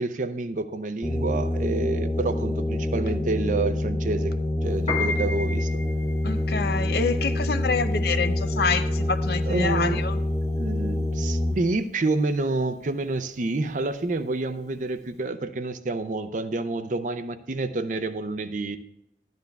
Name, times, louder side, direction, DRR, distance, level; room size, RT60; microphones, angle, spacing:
voice 1, 0.0-4.3 4.6-5.8 9.4-10.1 10.6-18.8, right 2 dB, 45° right, 11 dB, 0.5 m, -28 dB
sound 1, 1.0-11.6, left 1 dB, 15° left, 0.7 m, -26 dB
Piano, 4.7-15.1, left 3 dB, 35° left, 1.5 m, -36 dB
voice 2, 6.2-10.2, left 4 dB, 55° left, 11 dB, 0.5 m, -27 dB
13.0 x 10.5 x 2.3 m, 0.81 s
head